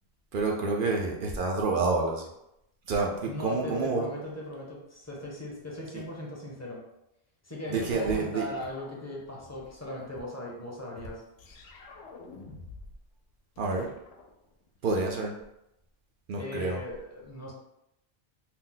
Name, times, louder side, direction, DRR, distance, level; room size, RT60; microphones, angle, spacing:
voice 1, 0.3-2.3 2.9-4.1 5.9-6.0 7.7-8.5 13.6-13.9 14.8-15.4 16.3-16.8, right 3 dB, 60° right, 0 dB, 0.7 m, -28 dB
voice 2, 3.3-6.8 7.4-11.2 16.4-17.5, left 1 dB, 20° left, -4 dB, 0.6 m, -38 dB
sound 1, 8.5-9.8 11.4-13.1 13.3-14.9, left 3 dB, 80° left, 0.8 m, -49 dB
2.7 x 2.1 x 3.7 m, 0.85 s
omnidirectional pair, 1.1 m